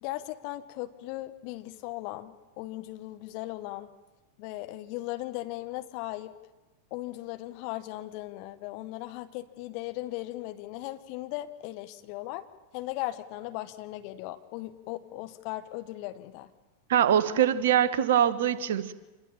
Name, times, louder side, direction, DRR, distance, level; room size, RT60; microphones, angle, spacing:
voice 1, 0.0-3.9 4.4-6.3 6.9-12.4 12.7-16.5, left 17 dB, 45° left, 9 dB, 1.7 m, -37 dB
voice 2, 16.9-18.9, right 10 dB, 55° right, 15 dB, 1.4 m, -23 dB
27.0 x 22.0 x 7.5 m, 1.1 s
figure-of-eight pair, 90°, 0 cm